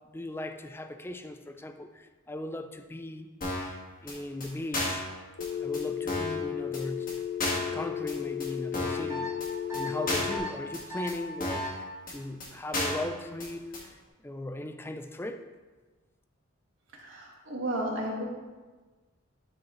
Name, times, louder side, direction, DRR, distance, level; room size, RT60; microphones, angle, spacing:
voice 1, 0.0-3.3 4.0-5.1 5.6-7.2 7.4-9.3 9.7-13.9 14.2-15.4, left 1 dB, 10° left, 8 dB, 0.4 m, -38 dB
sound 1, 3.4-3.7 4.1-4.2 4.4-4.5 4.7-5.1 5.4-5.5 5.7-5.8 6.1-6.4 6.7-6.8 7.1-7.2 7.4-7.7 8.1-8.2 8.4-8.5 8.7-9.1 9.4-9.5 9.7-9.8 10.1-10.4 10.7-10.8 11.1-11.2 11.4-11.7 12.1-12.2 12.4-12.5 12.7-13.1 13.4-13.5 13.7-13.8, left 1 dB, 45° left, 1.7 m, -32 dB
Telephone, 5.4-10.4, left 9 dB, 90° left, 0.7 m, -34 dB
sound 2, 9.1-9.3 9.7-9.9 10.3-10.5 10.9-11.1 11.5-11.7, equal, 15° right, 2.5 m, -36 dB
voice 2, 16.9-18.2, right 1 dB, 70° right, -2 dB, 1.9 m, -33 dB
11.5 x 4.9 x 3.2 m, 1.3 s
head